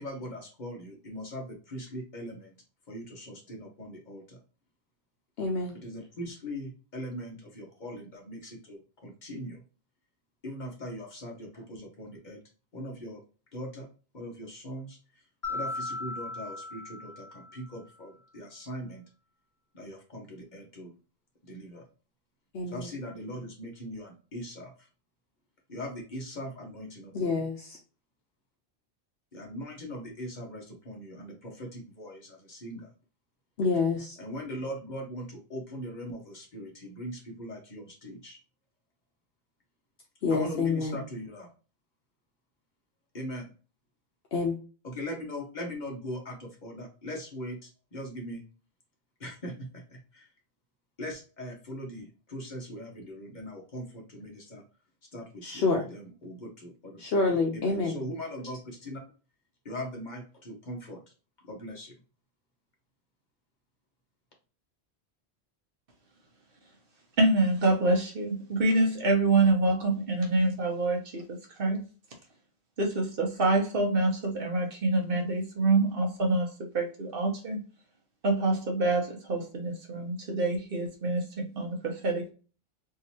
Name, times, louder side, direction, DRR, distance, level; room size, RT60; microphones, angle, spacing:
voice 1, 0.0-2.5 2.9-4.4 5.7-9.6 10.4-12.4 12.7-13.2 13.5-13.8 14.1-15.2 15.5-19.0 19.7-20.9 21.4-21.8 22.7-24.9 25.7-27.5 29.3-32.9 34.2-38.4 40.3-41.5 43.1-43.5 44.8-48.5 49.2-50.3 51.0-54.6 55.1-57.0 57.5-59.0 59.6-61.0 61.4-61.9, equal, 45° left, 1.1 m, -40 dB
voice 2, 5.4-5.8 22.6-22.9 27.1-27.8 33.6-34.1 40.2-41.0 44.3-44.6 55.4-55.8 57.0-58.0, left 4 dB, 65° left, 0.9 m, -27 dB
Mallet percussion, 15.4-17.8, left 3 dB, 20° left, 1.1 m, -37 dB
voice 3, 67.2-71.8 72.8-76.5 76.7-77.6 78.2-82.3, right 2 dB, 60° right, 1.1 m, -26 dB
3.7 x 2.7 x 2.8 m
omnidirectional pair, 1.1 m